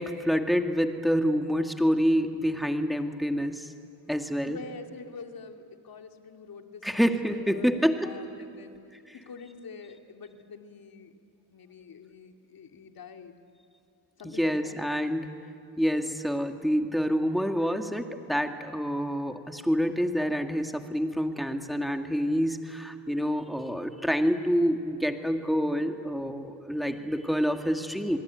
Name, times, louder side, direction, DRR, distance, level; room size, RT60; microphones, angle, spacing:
voice 1, 0.0-3.7 4.1-4.6 6.8-8.2 9.1-9.2 14.2-15.3 15.8-28.2, equal, ahead, 5 dB, 2.1 m, -27 dB
voice 2, 4.4-8.8 9.1-11.1 11.5-13.3 14.2-14.7, left 4 dB, 50° left, 5 dB, 2.7 m, -46 dB
27.0 x 21.0 x 9.4 m, 2.5 s
cardioid pair, 85°, 47 cm